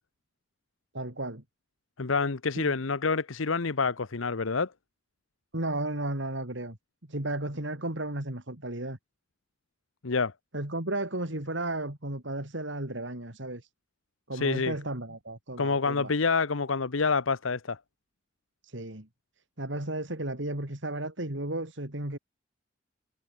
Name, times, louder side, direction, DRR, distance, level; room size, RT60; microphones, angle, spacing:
voice 1, 0.9-1.4 2.6-2.7 5.5-6.8 7.1-9.0 10.5-13.7 14.3-16.1 18.6-19.1 19.6-22.2, right 1 dB, 65° right, 3.5 m, -34 dB
voice 2, 2.0-4.7 10.0-10.3 14.3-14.7 15.6-17.8, left 4 dB, 85° left, 1.0 m, -27 dB
head